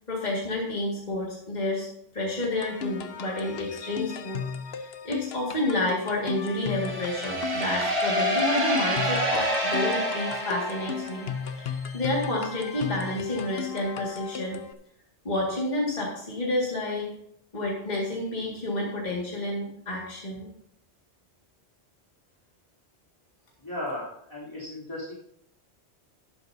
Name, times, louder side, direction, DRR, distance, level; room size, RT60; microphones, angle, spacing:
voice 1, 0.1-1.9 2.1-4.4 4.8-14.6 15.2-17.1 17.5-20.5, left 1 dB, 40° left, -3 dB, 2.2 m, -30 dB
sound 1, 2.4-14.7, left 7 dB, 65° left, 1.0 m, -36 dB
sound 2, 6.8-11.5, equal, 70° right, 2.6 m, -27 dB
voice 2, 23.6-25.1, left 1 dB, 25° left, -9 dB, 3.2 m, -35 dB
12.5 x 11.0 x 2.7 m, 0.73 s
omnidirectional pair, 1.2 m